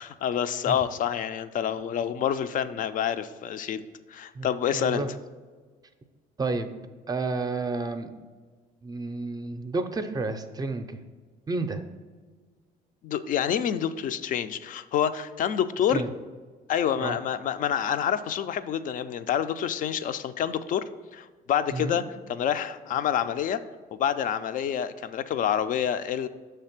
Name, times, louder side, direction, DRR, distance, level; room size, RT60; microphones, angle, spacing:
voice 1, 0.0-3.8 4.1-5.1 13.0-16.0 16.7-20.8 21.1-22.0 22.3-23.6 23.9-26.3, left 9 dB, 50° left, 12 dB, 0.4 m, -27 dB
voice 2, 4.7-5.1 6.4-6.7 7.1-8.1 8.8-11.0 11.5-11.8 15.9-16.1 17.0-17.2 21.7-22.0, right 3 dB, 25° right, 8 dB, 0.5 m, -30 dB
6.3 x 3.3 x 5.9 m, 1.4 s
cardioid pair, 110°, 17 cm